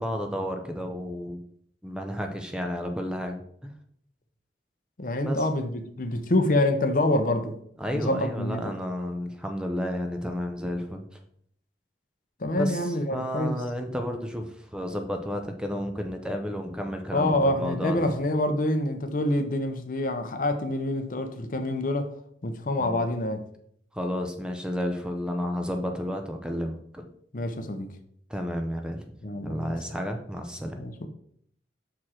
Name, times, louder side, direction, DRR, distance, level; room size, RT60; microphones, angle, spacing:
voice 1, 0.0-1.4 1.8-3.7 5.2-5.4 7.8-11.0 12.6-18.1 22.8-23.0 23.9-27.1 28.3-29.0 29.4-30.8, equal, 5° right, 0.6 m, -32 dB
voice 2, 5.0-7.6 7.9-8.6 12.4-13.6 17.1-22.1 22.4-23.4 27.3-27.9 29.2-29.8 30.8-31.1, left 1 dB, 45° left, 0.7 m, -26 dB
6.2 x 4.6 x 4.3 m
head